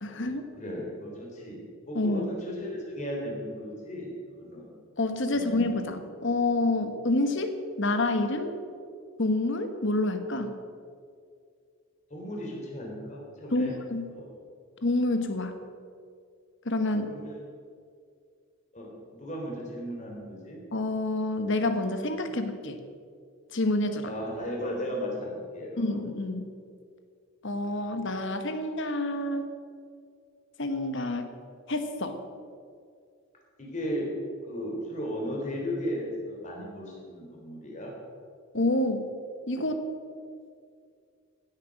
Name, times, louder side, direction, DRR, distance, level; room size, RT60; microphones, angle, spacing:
voice 1, 0.0-0.4 1.9-2.3 5.0-8.5 9.2-10.5 13.5-14.0 14.8-15.6 16.6-17.2 20.7-22.8 23.5-24.1 25.8-26.5 27.4-29.4 30.6-31.3 31.7-32.2 38.5-39.0 39.5-39.9, left 2 dB, 55° left, 8 dB, 1.2 m, -28 dB
voice 2, 0.6-1.6 1.9-4.7 5.3-5.5 12.1-13.7 14.2-14.3 17.1-17.4 18.7-20.6 24.1-26.0 33.6-34.1 34.5-37.9, equal, 30° left, -2 dB, 3.5 m, -35 dB
16.0 x 8.7 x 6.5 m, 2.2 s
head